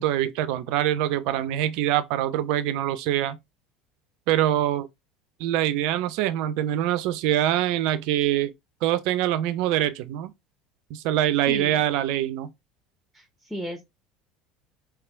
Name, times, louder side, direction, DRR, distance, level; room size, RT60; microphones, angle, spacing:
voice 1, 0.0-3.4 4.3-4.9 5.4-8.5 8.8-10.3 10.9-12.5, right 12 dB, 60° right, 0.3 m, -24 dB
voice 2, 11.5-11.8 13.1-13.8, equal, 5° right, 0.6 m, -35 dB
3.3 x 2.3 x 2.4 m
figure-of-eight pair, 65°, 0 cm